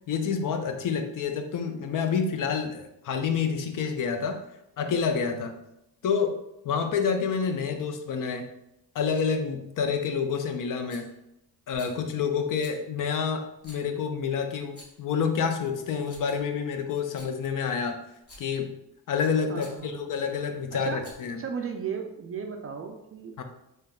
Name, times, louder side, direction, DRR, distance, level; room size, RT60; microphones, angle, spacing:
voice 1, 0.1-4.4 4.8-5.5 6.0-6.3 6.6-8.5 8.9-11.1 11.7-18.0 18.4-18.7 19.1-21.4 23.4-23.5, left 6 dB, 50° left, 6 dB, 0.5 m, -28 dB
Rattle, 10.9-11.2 11.7-12.0 12.6-12.8 13.6-13.9 14.6-15.1 15.8-16.5 17.0-17.3 18.1-18.6 19.6-19.8 20.9-21.4, left 1 dB, 30° left, 0.9 m, -50 dB
voice 2, 19.5-20.1 20.8-21.0 21.3-23.4, right 6 dB, 35° right, 4 dB, 0.4 m, -35 dB
3.4 x 2.8 x 2.3 m, 0.85 s
supercardioid pair, 75°, 44 cm